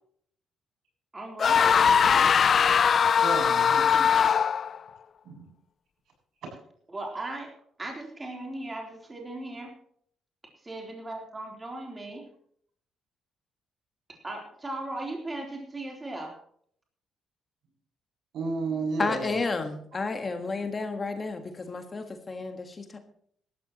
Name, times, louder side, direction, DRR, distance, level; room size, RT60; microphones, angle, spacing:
voice 1, 1.1-2.3 6.9-9.8 10.4-12.3 14.1-16.4, right 2 dB, 20° right, 0 dB, 3.6 m, -38 dB
sound 1, 1.4-4.8, left 7 dB, 45° left, 0.4 m, -21 dB
voice 2, 3.2-4.2 5.2-5.5 6.4-6.5 18.3-19.4, right 3 dB, 70° right, 0 dB, 7.3 m, -32 dB
voice 3, 19.0-23.0, left 3 dB, 30° left, 6 dB, 1.5 m, -31 dB
17.5 x 13.5 x 3.0 m, 0.63 s
cardioid pair, 115°, 0 cm